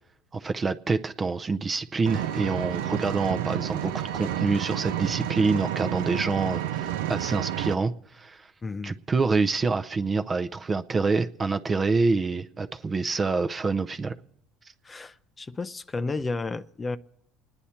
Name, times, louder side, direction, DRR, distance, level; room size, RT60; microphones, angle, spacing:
voice 1, 0.3-8.5 8.8-14.1, right 4 dB, 25° right, 7 dB, 0.6 m, -26 dB
Vehicle, 2.1-7.7, right 11 dB, 90° right, 0.5 m, -30 dB
voice 2, 8.6-8.9 14.8-17.0, left 3 dB, 20° left, 14 dB, 0.5 m, -32 dB
28.5 x 9.9 x 4.3 m, 0.77 s
supercardioid pair, 95°, 0 cm